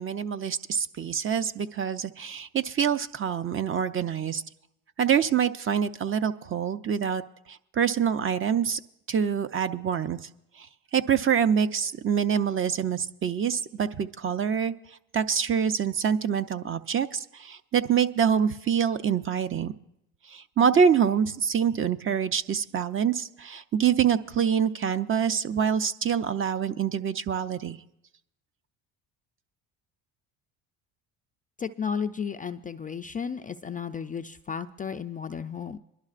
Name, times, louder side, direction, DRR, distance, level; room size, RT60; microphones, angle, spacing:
voice 1, 0.0-4.4 5.0-7.2 7.5-8.8 9.1-10.2 10.6-10.7 10.9-14.7 15.1-19.7 20.3-27.8, right 7 dB, 35° right, 12 dB, 0.6 m, -26 dB
voice 2, 31.6-35.8, left 6 dB, 20° left, 7 dB, 0.4 m, -33 dB
24.5 x 12.0 x 2.5 m, 0.81 s
supercardioid pair, 80°, 39 cm